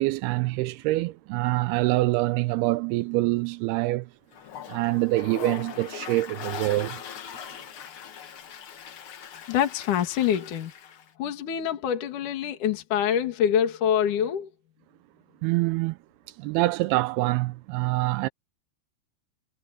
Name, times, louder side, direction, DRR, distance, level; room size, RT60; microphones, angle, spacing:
voice 1, 0.0-4.1 4.7-7.0 15.4-16.0 16.4-18.3, right 19 dB, 85° right, 2.5 m, -25 dB
Toilet flush, 4.3-11.1, left 8 dB, 80° left, 1.2 m, -40 dB
voice 2, 9.5-10.7 11.2-14.5, left 9 dB, 55° left, 3.4 m, -25 dB
omnidirectional pair, 4.5 m